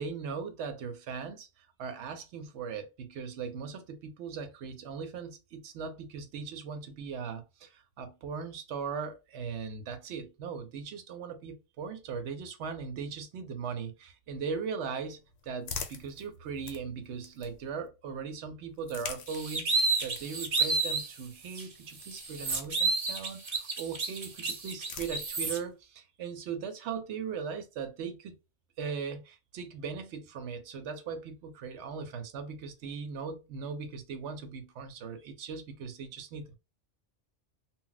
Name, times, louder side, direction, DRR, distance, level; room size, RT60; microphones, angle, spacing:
voice 1, 0.0-28.4 28.8-36.5, right 6 dB, 70° right, 0.8 m, -39 dB
sound 1, 14.8-17.9 18.7-23.3 24.2-25.7, left 6 dB, 80° left, 0.9 m, -46 dB
sound 2, 19.3-21.1 21.5-21.6 22.0-25.6, right 3 dB, 45° right, 0.5 m, -30 dB
2.1 x 2.1 x 3.8 m
omnidirectional pair, 1.3 m